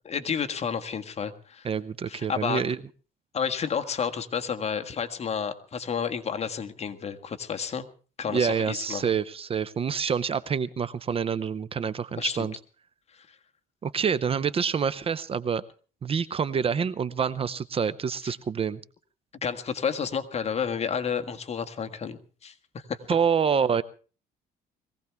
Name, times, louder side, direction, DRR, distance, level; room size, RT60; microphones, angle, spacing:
voice 1, 0.0-1.7 2.1-2.6 3.3-7.9 8.2-9.1 12.2-12.5 13.1-13.4 18.2-18.3 19.4-23.0, left 7 dB, 40° left, 7 dB, 1.6 m, -31 dB
voice 2, 1.6-2.8 8.3-12.5 13.8-15.6 16.0-18.8 23.1-23.8, right 6 dB, 35° right, 16 dB, 0.7 m, -27 dB
22.0 x 16.5 x 3.5 m, 0.38 s
cardioid pair, 110°, 17 cm